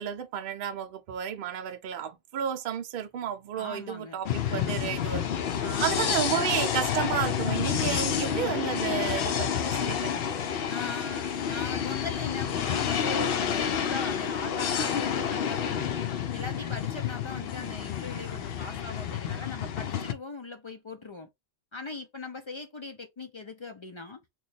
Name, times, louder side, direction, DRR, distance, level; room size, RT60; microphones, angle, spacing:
voice 1, 0.0-10.5, right 9 dB, 65° right, 0.7 m, -32 dB
voice 2, 3.6-4.2 5.6-6.1 10.7-15.9 16.3-21.3 21.7-24.2, left 3 dB, 45° left, 0.4 m, -40 dB
sound 1, 4.2-20.1, left 8 dB, 70° left, 0.8 m, -29 dB
3.0 x 2.3 x 3.9 m
omnidirectional pair, 1.1 m